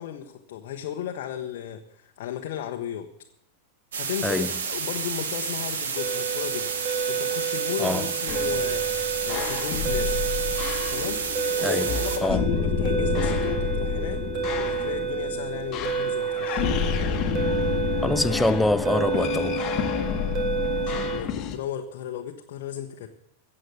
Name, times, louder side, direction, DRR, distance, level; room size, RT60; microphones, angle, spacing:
voice 1, 0.0-3.1 4.0-6.7 7.1-10.2 10.9-11.3 11.6-14.2 14.5-16.7 20.8-23.1, left 10 dB, 50° left, 1.0 m, -35 dB
sound 1, 3.9-12.2, right 5 dB, 65° right, 1.6 m, -30 dB
sound 2, 6.0-21.2, right 7 dB, 35° right, 1.6 m, -30 dB
sound 3, 8.3-21.6, left 7 dB, 35° left, 1.4 m, -29 dB
voice 2, 18.0-19.8, left 2 dB, 5° left, 0.5 m, -25 dB
15.5 x 7.8 x 8.1 m
figure-of-eight pair, 90°, 0 cm